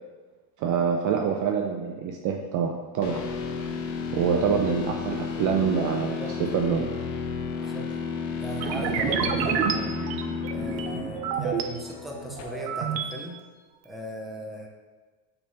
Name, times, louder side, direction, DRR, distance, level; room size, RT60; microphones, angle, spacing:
voice 1, 0.6-3.2 4.1-6.8, right 6 dB, 40° right, 2 dB, 0.6 m, -26 dB
sound 1, 3.0-13.0, left 5 dB, 80° left, 1.0 m, -33 dB
voice 2, 7.6-7.9 8.4-9.9 10.5-13.4 13.8-14.7, right 1 dB, ahead, -2 dB, 0.9 m, -38 dB
sound 2, 8.6-11.6 12.1-13.1, right 7 dB, 90° right, 0.8 m, -29 dB
6.8 x 3.5 x 4.2 m, 1.3 s
supercardioid pair, 115°, 49 cm